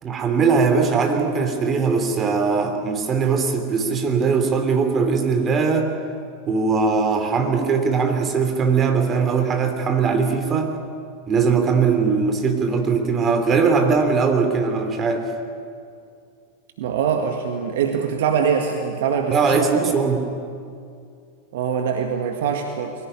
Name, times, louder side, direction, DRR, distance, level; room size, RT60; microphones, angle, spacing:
voice 1, 0.0-5.9 6.5-10.7 11.3-15.3 19.3-20.2, right 5 dB, 25° right, 5 dB, 3.0 m, -20 dB
voice 2, 16.8-19.9 21.5-22.9, right 7 dB, 55° right, 4 dB, 1.8 m, -23 dB
23.0 x 17.0 x 9.7 m, 2.3 s
figure-of-eight pair, 90°, 0 cm